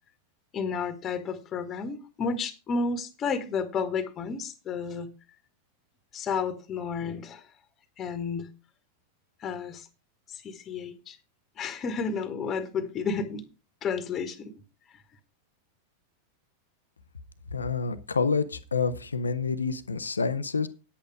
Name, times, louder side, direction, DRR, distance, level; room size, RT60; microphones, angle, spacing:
voice 1, 0.5-5.1 6.1-7.4 8.0-8.5 9.4-9.9 10.3-11.2 11.6-13.4 13.8-14.5, left 5 dB, 25° left, 1.6 m, -31 dB
voice 2, 17.5-20.7, left 4 dB, 75° left, 0.8 m, -28 dB
10.0 x 8.6 x 4.9 m
figure-of-eight pair, 90°, 0 cm